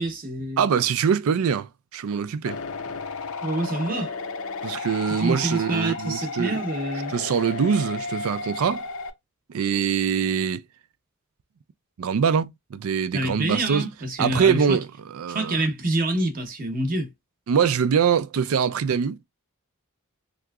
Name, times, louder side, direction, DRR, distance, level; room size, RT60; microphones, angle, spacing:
voice 1, 0.0-0.7 3.4-4.1 5.1-7.1 13.1-14.8 15.3-17.1, right 2 dB, 40° right, 0.8 m, -27 dB
voice 2, 0.6-2.6 4.6-6.6 7.1-8.8 9.5-10.6 12.0-13.8 14.2-14.9 15.1-15.6 17.5-19.2, right 7 dB, 75° right, 0.4 m, -23 dB
sound 1, 2.5-9.1, left 4 dB, 70° left, 0.6 m, -33 dB
3.5 x 2.8 x 2.3 m
head